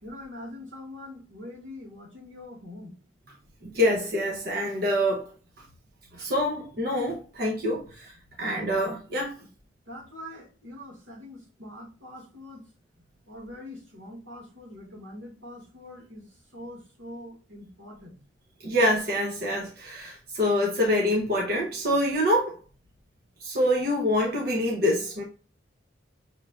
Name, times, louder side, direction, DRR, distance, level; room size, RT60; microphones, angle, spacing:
voice 1, 0.0-3.0 9.9-12.7 13.3-16.3 16.5-18.2, left 1 dB, 85° right, 2.0 m, -43 dB
voice 2, 3.6-5.3 6.1-8.1 8.4-9.3 18.6-22.6 23.4-25.2, left 1 dB, 55° right, 0.8 m, -26 dB
6.4 x 3.1 x 2.4 m
head